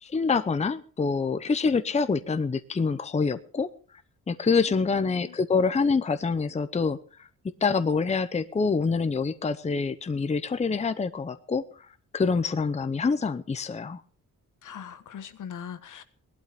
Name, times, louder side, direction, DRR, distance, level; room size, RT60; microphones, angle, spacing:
voice 1, 0.0-3.7 4.3-7.3 7.6-11.9 12.1-14.0, left 4 dB, 20° left, 11 dB, 0.8 m, -26 dB
voice 2, 4.7-5.3 14.6-16.0, left 8 dB, 70° left, 11 dB, 1.6 m, -41 dB
19.0 x 12.0 x 5.1 m, 0.40 s
wide cardioid pair, 155°, 32 cm